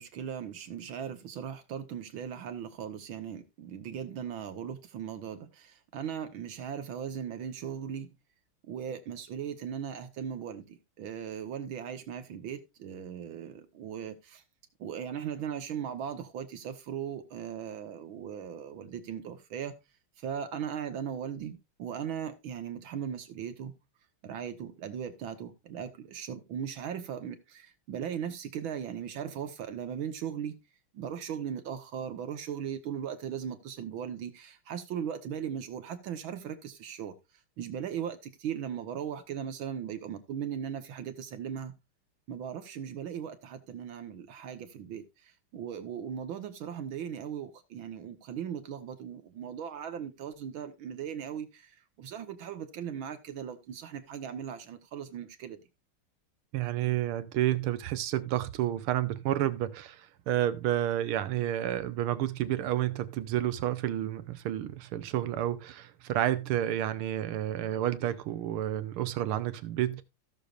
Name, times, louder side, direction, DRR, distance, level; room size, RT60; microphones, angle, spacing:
voice 1, 0.0-8.1 8.7-14.4 14.8-19.7 20.2-23.7 24.2-30.6 30.9-37.1 37.6-41.7 42.3-45.0 45.5-51.7 52.0-55.6, right 8 dB, 70° right, 2.0 m, -38 dB
voice 2, 56.5-60.0 60.3-70.0, right 12 dB, 90° right, 1.7 m, -30 dB
16.0 x 6.6 x 2.5 m
omnidirectional pair, 2.3 m